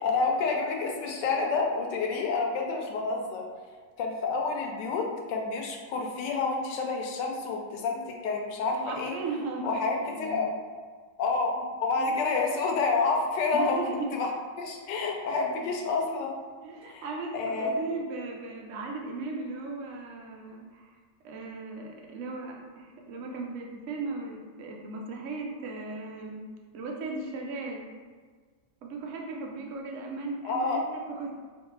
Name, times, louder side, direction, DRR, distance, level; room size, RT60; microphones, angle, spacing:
voice 1, 0.0-3.4 4.0-9.2 9.6-10.5 11.2-11.5 11.8-13.8 14.1-14.3 14.6-16.3 16.9-17.0 17.3-17.8 30.4-30.8, left 4 dB, 75° left, 1 dB, 1.2 m, -29 dB
voice 2, 8.7-10.5 11.6-11.7 12.0-12.3 13.5-14.2 15.6-15.7 16.6-20.8 21.2-26.4 26.7-27.8 28.8-31.3, right 3 dB, 75° right, 0 dB, 0.7 m, -37 dB
3.4 x 3.1 x 3.2 m, 1.5 s
omnidirectional pair, 2.0 m